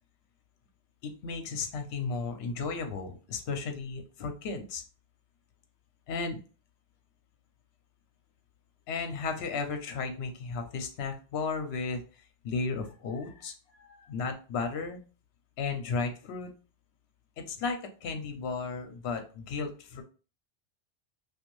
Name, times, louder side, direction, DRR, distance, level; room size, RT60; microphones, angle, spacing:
voice 1, 1.0-4.8 6.1-6.4 8.9-12.0 12.4-13.5 13.8-15.0 15.6-16.5 17.4-20.0, left 4 dB, 70° left, 5 dB, 0.8 m, -34 dB
2.5 x 2.3 x 3.0 m, 0.35 s
omnidirectional pair, 1.2 m